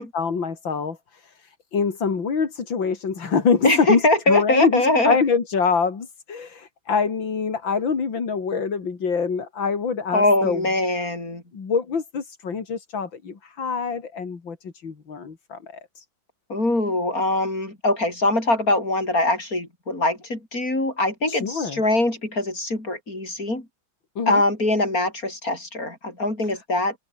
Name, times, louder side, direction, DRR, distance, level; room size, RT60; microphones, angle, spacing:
voice 1, 0.0-10.6 11.5-16.1 21.3-21.8 24.2-24.4, left 5 dB, 85° left, 3.5 m, -25 dB
voice 2, 3.6-5.2 10.1-11.4 16.5-23.7 24.3-27.0, left 2 dB, 50° left, 7.6 m, -22 dB
omnidirectional pair, 2.0 m